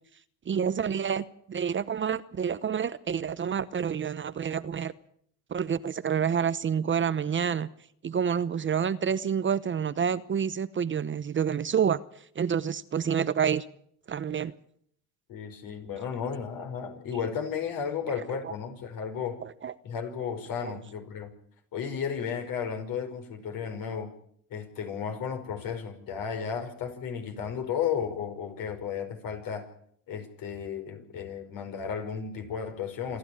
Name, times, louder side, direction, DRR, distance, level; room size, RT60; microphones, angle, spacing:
voice 1, 0.5-4.9 5.5-7.7 8.0-12.0 12.4-13.6 14.1-14.5 18.4-18.5 19.4-19.7 20.6-20.7, right 7 dB, 30° right, 14 dB, 0.9 m, -28 dB
voice 2, 15.3-19.4 19.8-21.3 21.7-24.1 24.5-29.7 30.1-33.2, left 7 dB, 60° left, 6 dB, 5.3 m, -34 dB
27.0 x 12.0 x 8.7 m, 0.67 s
supercardioid pair, 95°, 38 cm